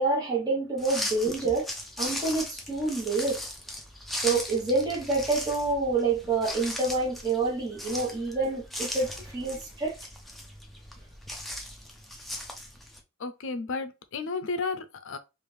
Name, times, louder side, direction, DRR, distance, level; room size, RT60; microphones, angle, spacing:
voice 1, 0.0-1.7 2.0-3.4 4.1-10.0, right 3 dB, 20° right, 1.1 m, -27 dB
sound 1, 0.8-13.0, left 1 dB, ahead, 0.5 m, -38 dB
voice 2, 13.2-15.2, left 3 dB, 60° left, 0.5 m, -33 dB
3.3 x 2.5 x 3.2 m
head